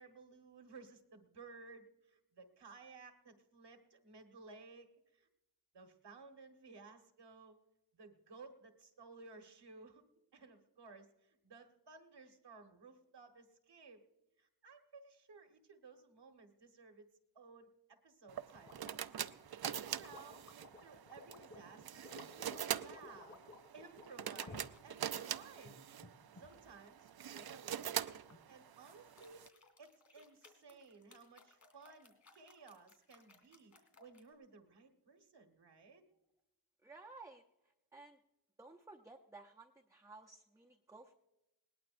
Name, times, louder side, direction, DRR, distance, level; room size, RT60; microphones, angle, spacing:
voice 1, 0.0-5.3 5.7-7.6 7.9-10.0 10.3-14.1 14.4-19.0 19.8-20.4 20.8-23.4 23.7-25.8 26.4-28.0 28.5-29.5 29.8-36.0, right 4 dB, 80° right, 5 dB, 1.5 m, -58 dB
sound 1, 18.3-29.5, right 10 dB, 65° right, 0.5 m, -44 dB
sound 2, 18.5-24.8 25.4-26.7 27.8-28.4 28.8-34.3, left 3 dB, 45° left, 2.8 m, -57 dB
voice 2, 36.8-38.2 38.6-41.2, right 3 dB, 10° right, 0 dB, 0.6 m, -56 dB
20.5 x 19.0 x 2.6 m, 0.94 s
wide cardioid pair, 125°, 40 cm